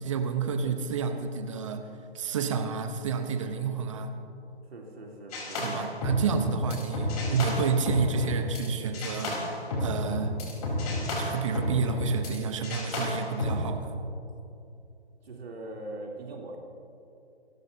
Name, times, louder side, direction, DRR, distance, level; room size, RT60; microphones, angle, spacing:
voice 1, 0.0-1.9 2.1-4.1 5.6-9.3 9.8-10.3 11.2-13.9, right 5 dB, 30° right, 6 dB, 0.9 m, -29 dB
voice 2, 4.7-5.6 6.6-6.7 15.2-16.6, right 2 dB, 65° right, -1 dB, 3.3 m, -41 dB
sound 1, 5.3-8.7 8.9-12.4 12.6-13.6, left 1 dB, 35° left, 4.1 m, -31 dB
26.5 x 13.0 x 2.8 m, 2.7 s
figure-of-eight pair, 145°, 33 cm